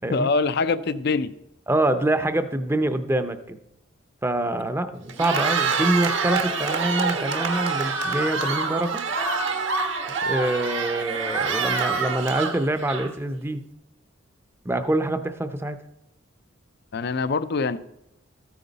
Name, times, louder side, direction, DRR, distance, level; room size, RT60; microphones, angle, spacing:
voice 1, 0.1-1.3 16.9-17.8, left 4 dB, 55° left, 14 dB, 0.5 m, -24 dB
voice 2, 1.7-3.6 4.2-9.0 10.3-13.6 14.6-15.8, right 1 dB, 10° right, 10 dB, 0.6 m, -25 dB
Cheering, 5.1-13.3, right 4 dB, 70° right, 1.3 m, -26 dB
14.0 x 9.3 x 4.0 m, 0.85 s
head